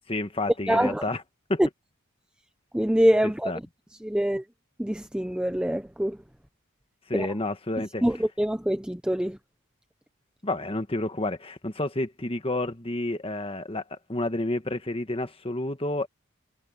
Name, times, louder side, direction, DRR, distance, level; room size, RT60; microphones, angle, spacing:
voice 1, 0.1-1.2 1.5-1.6 3.2-3.6 7.1-8.0 10.4-16.1, left 2 dB, 25° left, 1.4 m, -30 dB
voice 2, 0.7-1.0 2.7-3.5 4.0-4.4 4.8-6.2 7.1-7.3 8.0-9.4, equal, 5° right, 0.6 m, -24 dB
head